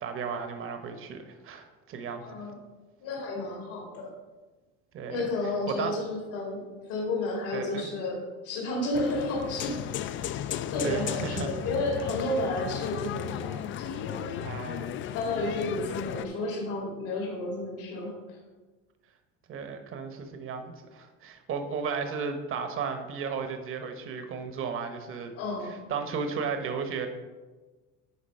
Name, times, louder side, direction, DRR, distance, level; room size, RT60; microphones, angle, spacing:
voice 1, 0.0-2.5 4.9-5.2 5.7-5.9 7.5-7.9 10.8-11.5 14.4-14.9 19.5-25.3 25.6-27.1, right 5 dB, 45° right, 7 dB, 1.0 m, -34 dB
voice 2, 2.2-2.6 3.0-4.1 5.1-9.8 10.0-10.2 10.7-14.7 15.1-18.4 25.3-25.8, left 2 dB, 75° left, -2 dB, 2.4 m, -32 dB
sound 1, 8.9-16.3, left 10 dB, 40° left, 0.4 m, -35 dB
9.9 x 4.1 x 5.4 m, 1.3 s
cardioid pair, 115°, 31 cm